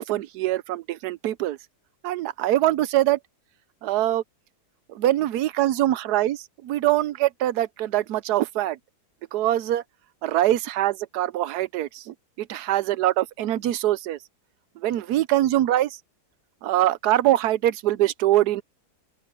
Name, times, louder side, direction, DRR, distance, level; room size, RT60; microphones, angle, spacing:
voice 1, 0.0-1.6 2.0-3.2 3.8-4.2 4.9-8.8 9.3-9.8 10.2-14.2 14.8-16.0 16.6-18.6, right 14 dB, 75° right, 1.2 m, -23 dB
open air
omnidirectional pair, 1.8 m